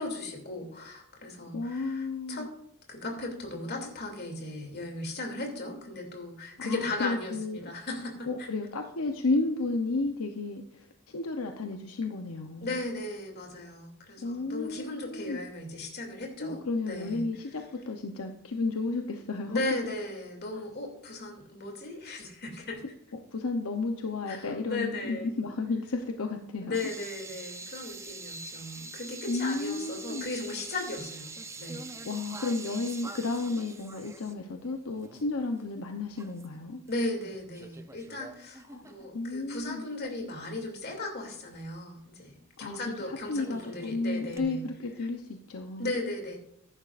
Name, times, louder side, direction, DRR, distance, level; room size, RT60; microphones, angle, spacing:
voice 1, 0.0-2.5 2.9-8.5 12.6-17.2 19.5-22.8 24.3-25.3 26.6-31.9 36.9-44.7 45.8-46.4, left 2 dB, 50° left, 1 dB, 2.8 m, -36 dB
voice 2, 1.5-2.5 6.6-7.7 8.3-12.8 14.2-15.4 16.4-19.6 23.3-26.8 29.3-30.3 32.0-36.8 38.7-38.8 39.1-39.9 42.6-42.8 43.1-45.9, left 3 dB, 80° left, 4 dB, 0.8 m, -32 dB
sound 1, 26.7-35.3 35.6-35.7 36.2-36.9 37.2-39.6 40.0-40.2 42.7-42.8 43.1-44.4, right 3 dB, 15° right, 0.6 m, -45 dB
14.5 x 11.0 x 2.5 m, 0.78 s
head